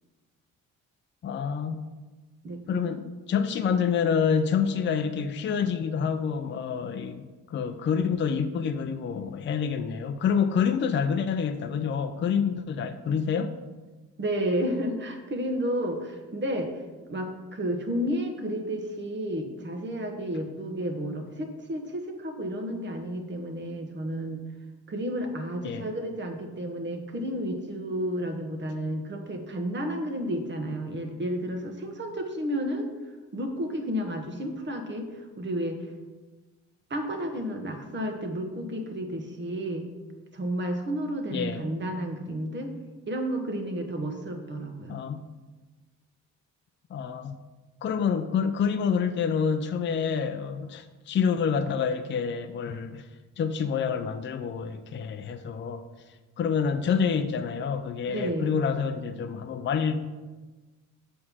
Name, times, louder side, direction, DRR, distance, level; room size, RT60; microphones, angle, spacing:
voice 1, 1.2-1.9 2.7-13.5 25.6-25.9 41.3-41.6 44.9-45.2 46.9-47.4 47.8-53.1 53.4-55.8 56.4-60.0, left 6 dB, 40° left, 8 dB, 0.5 m, -27 dB
voice 2, 2.4-2.8 14.2-16.7 17.1-24.4 24.9-32.9 33.3-35.1 35.4-35.8 36.9-39.9 40.3-42.7 43.1-45.0 58.1-58.5, equal, 35° right, 4 dB, 1.2 m, -31 dB
7.5 x 3.7 x 6.1 m, 1.2 s
cardioid pair, 90°, 30 cm